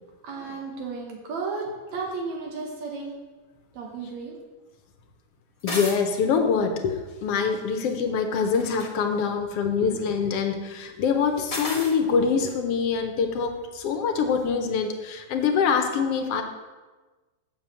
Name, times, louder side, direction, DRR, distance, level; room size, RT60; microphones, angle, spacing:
voice 1, 0.2-3.2 3.7-4.4, right 4 dB, 70° right, 0 dB, 2.6 m, -33 dB
voice 2, 5.6-6.9 7.2-16.4, left 6 dB, 65° left, 5 dB, 1.7 m, -24 dB
sound 1, 5.6-6.0 8.4-8.9 11.5-12.0, left 2 dB, 40° left, 0.4 m, -32 dB
8.0 x 6.8 x 7.5 m, 1.3 s
omnidirectional pair, 3.3 m